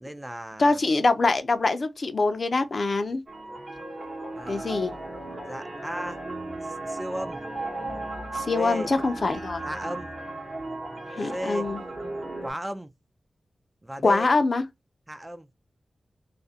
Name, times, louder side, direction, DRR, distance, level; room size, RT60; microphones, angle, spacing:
voice 1, 0.0-0.8 4.4-4.8 5.4-6.2 6.6-7.4 8.5-8.9 9.6-10.1 11.2-11.7 12.4-12.9 13.8-14.3 15.1-15.5, equal, 15° right, 0.3 m, -35 dB
voice 2, 0.6-3.2 4.5-4.9 8.3-9.6 11.2-11.8 14.0-14.6, left 3 dB, 55° left, 0.4 m, -24 dB
sound 1, 3.3-12.5, right 2 dB, 35° right, 0.9 m, -36 dB
2.3 x 2.1 x 2.6 m
wide cardioid pair, 85°, 0 cm